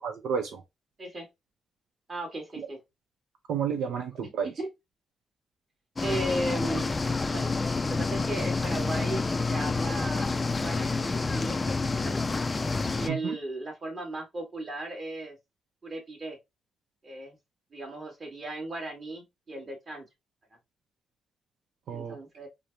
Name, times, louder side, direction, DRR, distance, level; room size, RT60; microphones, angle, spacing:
voice 1, 0.0-0.6 3.5-4.5 13.1-13.4 21.9-22.2, right 7 dB, 80° right, 0.6 m, -31 dB
voice 2, 2.1-2.8 3.8-3.9 4.2-4.7 6.0-6.9 7.3-7.5 7.9-12.2 13.0-15.4 15.8-16.4 17.0-17.4 17.7-20.1 21.9-22.5, right 1 dB, 35° right, 1.7 m, -36 dB
sound 1, 6.0-13.1, left 3 dB, 25° left, 0.3 m, -28 dB
4.9 x 2.1 x 2.6 m
cardioid pair, 95°, 0 cm